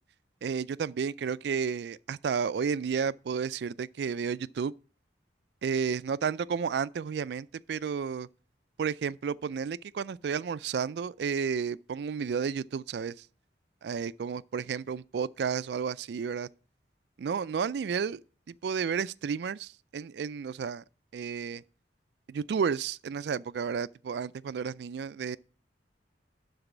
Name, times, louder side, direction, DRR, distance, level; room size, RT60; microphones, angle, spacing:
voice 1, 0.4-4.7 5.6-8.3 8.8-13.3 13.8-16.5 17.2-18.2 18.5-20.8 21.1-21.6 22.3-25.4, right 6 dB, 65° right, 0.3 m, -32 dB
12.0 x 4.0 x 5.9 m
head